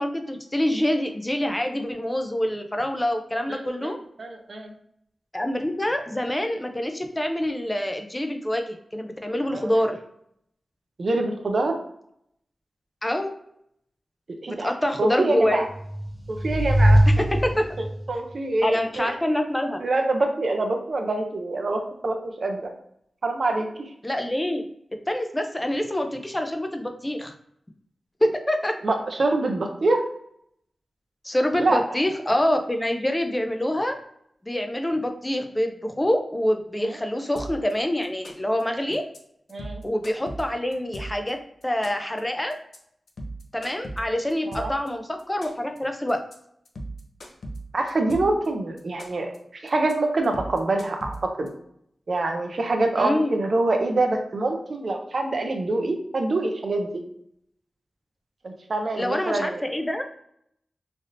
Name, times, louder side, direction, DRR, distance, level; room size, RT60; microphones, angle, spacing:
voice 1, 0.0-4.0 5.3-10.0 13.0-13.3 14.5-15.6 17.1-17.6 18.6-19.8 24.0-24.6 25.1-27.3 28.2-28.7 31.2-34.0 34.4-39.0 39.8-41.4 41.6-42.5 43.5-46.2 53.0-53.4 58.9-60.0, left 1 dB, 15° left, 5 dB, 0.4 m, -26 dB
voice 2, 3.5-3.9 4.2-4.7 9.5-9.7 11.0-11.8 14.4-14.7 15.0-15.7 16.3-17.0 17.8-19.2 19.8-22.7 23.2-23.7 28.8-30.0 31.6-31.8 36.8-37.0 39.5-39.8 44.5-44.7 47.7-51.5 52.1-56.9 58.4-59.6, right 2 dB, 55° right, 4 dB, 0.5 m, -25 dB
sound 1, 15.7-18.1, equal, 10° right, 0.7 m, -20 dB
sound 2, 37.4-37.7 38.0-38.6 38.9-39.2 39.5-41.3 41.6-42.2 42.5-42.8 43.1-44.9 45.2-45.8 46.1-46.3 46.7-48.5 48.8-49.4 49.7-49.9 50.2-51.5, right 1 dB, 75° left, 0.5 m, -37 dB
3.3 x 2.6 x 2.5 m, 0.72 s
wide cardioid pair, 120°, 0 cm